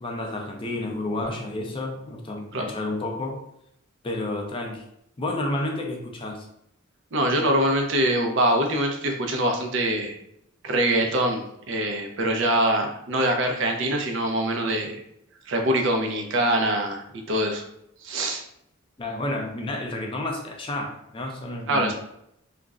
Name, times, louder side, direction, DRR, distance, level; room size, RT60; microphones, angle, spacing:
voice 1, 0.0-3.4 4.0-4.8 5.2-6.5 19.0-21.9, left 2 dB, 25° left, 1 dB, 0.4 m, -30 dB
voice 2, 7.1-10.2 10.6-15.0 15.5-17.6 18.0-18.4 21.7-21.9, right 1 dB, 60° right, 3 dB, 0.5 m, -24 dB
2.4 x 2.0 x 3.5 m, 0.78 s
head